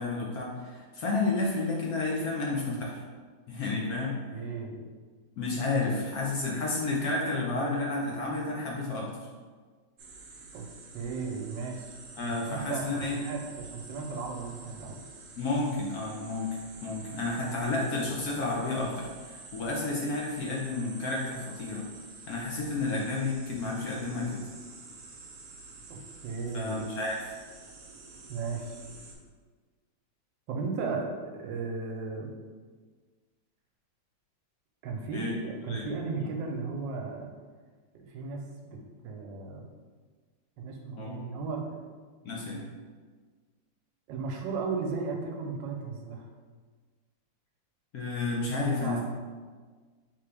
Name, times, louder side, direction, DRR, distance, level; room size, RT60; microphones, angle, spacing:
voice 1, 0.0-3.0 3.5-4.2 5.4-9.3 12.2-13.2 15.3-16.5 16.8-21.9 22.3-24.4 26.5-27.3 35.1-35.3 35.7-35.9 36.2-36.3 41.0-41.2 42.2-42.6 47.9-49.0, left 3 dB, 65° left, -3 dB, 1.0 m, -31 dB
voice 2, 4.3-4.8 10.5-10.7 10.9-11.9 12.2-15.0 22.8-23.0 26.2-26.8 28.3-28.8 30.5-32.3 34.8-37.3 37.9-39.7 40.6-41.8 44.1-46.3 48.5-49.0, right 4 dB, 80° right, 2 dB, 1.3 m, -35 dB
sound 1, 10.0-29.1, right 4 dB, 65° right, 0.8 m, -48 dB
3.8 x 3.5 x 3.3 m, 1.5 s
omnidirectional pair, 2.0 m